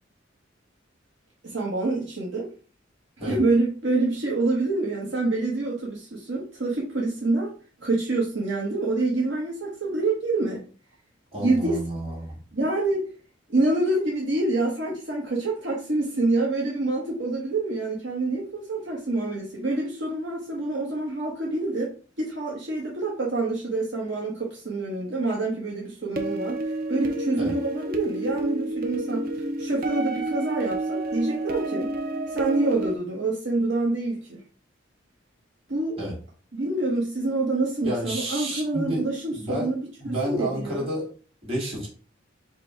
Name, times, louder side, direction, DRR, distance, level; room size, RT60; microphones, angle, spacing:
voice 1, 1.4-2.5 3.3-7.5 7.8-10.6 11.4-11.8 12.5-13.1 13.5-26.6 26.9-29.3 29.6-31.9 32.3-34.4 35.7-36.0 36.5-39.8 40.0-40.8, right 2 dB, 65° right, -3 dB, 1.2 m, -26 dB
voice 2, 11.3-12.4 27.4-27.5 36.0-36.1 37.8-39.0 39.3-39.7 40.0-41.1 41.4-41.9, right 1 dB, 30° right, -5 dB, 2.2 m, -30 dB
sound 1, 26.2-32.9, right 2 dB, 50° right, 0.6 m, -29 dB
5.0 x 2.2 x 4.4 m, 0.39 s
head